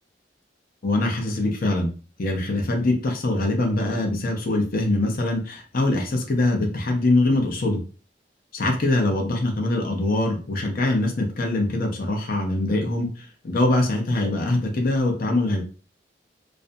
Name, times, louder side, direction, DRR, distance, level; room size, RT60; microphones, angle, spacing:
voice 1, 0.8-1.9 2.2-7.8 8.5-13.1 13.4-15.6, left 2 dB, 55° left, 1 dB, 0.6 m, -23 dB
2.5 x 2.1 x 2.6 m, 0.37 s
head